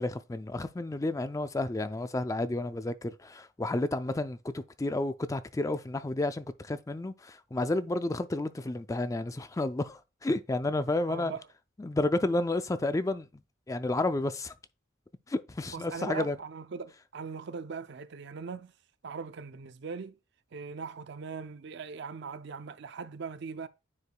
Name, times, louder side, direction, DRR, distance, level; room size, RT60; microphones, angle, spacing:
voice 1, 0.0-11.3 11.8-13.3 13.7-14.5 15.3-16.4, left 2 dB, 15° left, 0.4 m, -31 dB
voice 2, 11.1-11.5 15.7-18.7 19.0-20.2 20.5-23.7, right 5 dB, 60° right, 0.5 m, -40 dB
9.6 x 4.7 x 2.2 m
head